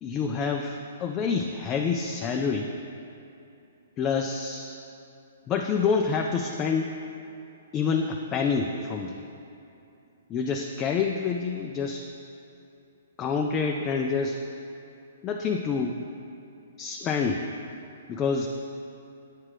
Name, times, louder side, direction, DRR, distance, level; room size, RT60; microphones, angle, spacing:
voice 1, 0.0-2.7 4.0-4.8 5.5-6.9 7.7-9.2 10.3-12.1 13.2-14.4 15.2-16.0 16.8-17.5 18.1-18.5, left 5 dB, 25° left, 3 dB, 0.3 m, -27 dB
7.5 x 6.0 x 3.3 m, 2.8 s
hypercardioid pair, 145°, 0 cm